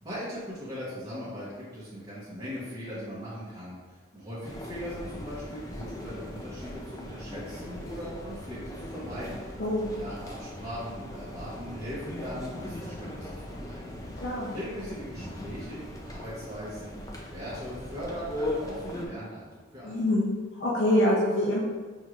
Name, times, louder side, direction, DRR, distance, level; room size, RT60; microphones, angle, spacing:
voice 1, 0.0-9.4 9.9-13.9 14.5-20.1, equal, 20° right, -11 dB, 0.9 m, -39 dB
sound 1, 4.4-19.1, left 1 dB, 20° left, 0.4 m, -39 dB
voice 2, 14.2-14.5 19.8-21.6, left 1 dB, 70° left, -5 dB, 0.6 m, -25 dB
5.4 x 3.0 x 2.4 m, 1.4 s
head